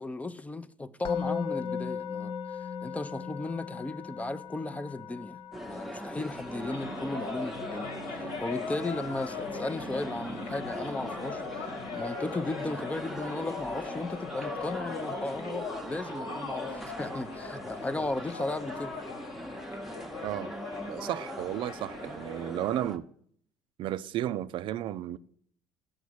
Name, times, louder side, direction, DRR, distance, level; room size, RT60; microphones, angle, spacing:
voice 1, 0.0-2.3 2.8-7.9 8.2-18.9, left 2 dB, 15° left, 0.5 m, -35 dB
Musical instrument, 1.0-12.2, left 6 dB, 55° left, 0.7 m, -40 dB
sound 1, 5.5-23.0, right 1 dB, 5° right, 0.9 m, -41 dB
sound 2, 6.4-22.6, left 4 dB, 70° left, 1.9 m, -40 dB
voice 2, 20.9-23.1 23.8-25.2, right 12 dB, 60° right, 0.4 m, -33 dB
6.9 x 5.1 x 6.2 m
supercardioid pair, 75°, 10 cm